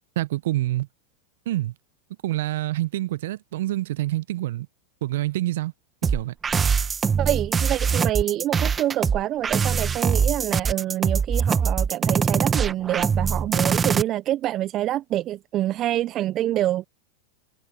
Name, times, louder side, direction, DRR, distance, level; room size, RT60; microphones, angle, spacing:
voice 1, 0.2-0.9 1.5-1.7 2.2-4.7 5.0-5.7 6.1-6.3, right 15 dB, 65° right, 1.0 m, -26 dB
sound 1, 6.0-14.0, right 6 dB, 20° right, 1.9 m, -22 dB
voice 2, 7.2-16.9, right 13 dB, 40° right, 0.7 m, -26 dB
hypercardioid pair, 90°, 0 cm